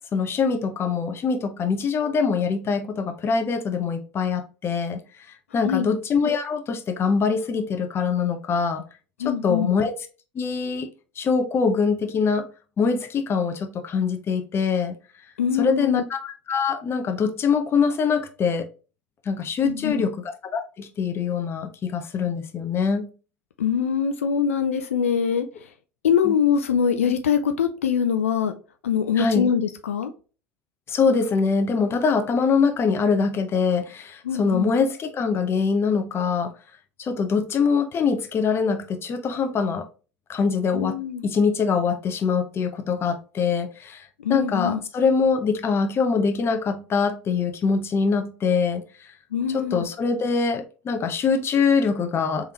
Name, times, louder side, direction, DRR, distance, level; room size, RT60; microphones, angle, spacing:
voice 1, 0.1-5.0 5.5-8.8 9.2-9.9 10.3-10.9 11.2-12.5 12.8-15.0 15.6-18.7 19.3-23.1 26.2-26.3 29.2-29.5 30.9-36.5 37.0-39.9 40.3-48.8 49.5-52.5, left 5 dB, 35° left, 0.8 m, -23 dB
voice 2, 9.2-9.7 15.4-16.0 19.6-20.1 23.6-25.5 26.0-28.5 28.8-30.1 34.2-34.7 40.7-41.2 44.2-44.8 49.3-49.9, left 7 dB, 90° left, 0.4 m, -23 dB
3.5 x 3.5 x 2.9 m
hypercardioid pair, 80°, 7 cm